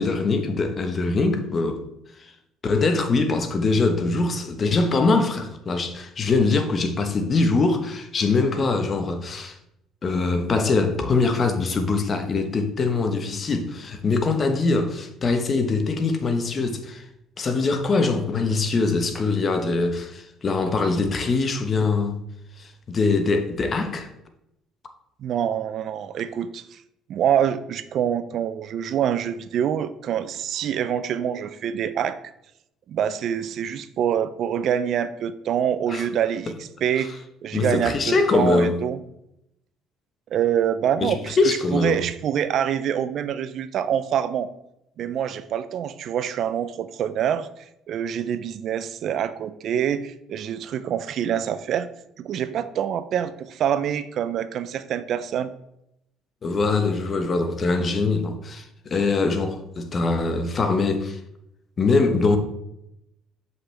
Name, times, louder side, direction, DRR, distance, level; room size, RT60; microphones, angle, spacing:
voice 1, 0.0-1.8 2.2-2.3 2.6-9.6 10.0-17.0 17.4-22.2 22.6-24.1 35.9-36.1 37.0-37.1 37.5-38.8 41.0-42.1 56.4-61.2 61.8-62.4, left 3 dB, 40° left, 1.1 m, -23 dB
voice 2, 25.2-26.8 27.1-32.2 32.9-37.1 37.4-39.0 40.3-44.5 45.0-47.5 47.9-51.9 52.2-55.5, right 9 dB, 60° right, 0.4 m, -25 dB
7.2 x 5.5 x 3.4 m
supercardioid pair, 90°, 0 cm